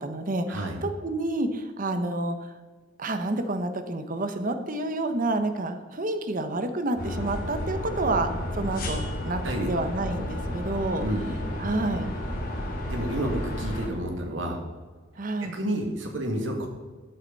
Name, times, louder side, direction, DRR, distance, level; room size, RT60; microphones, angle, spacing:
voice 1, 0.0-2.5 3.0-8.3 8.5-9.4 9.7-11.0 11.6-12.1 15.2-15.6, right 2 dB, 45° right, 8 dB, 1.0 m, -29 dB
sound 1, 7.0-13.9, left 1 dB, 50° left, 3.2 m, -32 dB
voice 2, 11.0-11.3 12.9-14.6 15.4-16.7, right 1 dB, 70° right, 2 dB, 2.2 m, -30 dB
13.5 x 8.1 x 4.1 m, 1.4 s
head